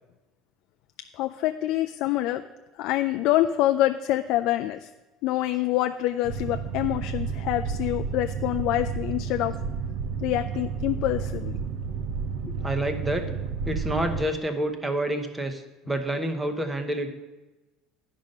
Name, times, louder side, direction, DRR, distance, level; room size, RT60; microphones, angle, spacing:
voice 1, 1.1-2.4 2.8-4.9 5.2-9.6 10.2-11.6, left 14 dB, 70° left, 7 dB, 0.3 m, -26 dB
Boat Water vehicle, 6.2-14.2, right 6 dB, 70° right, 0.7 m, -31 dB
voice 2, 12.4-13.2 13.7-17.1, right 1 dB, 10° right, 6 dB, 0.9 m, -28 dB
10.5 x 5.2 x 5.3 m, 1.1 s
cardioid pair, 125°, 0 cm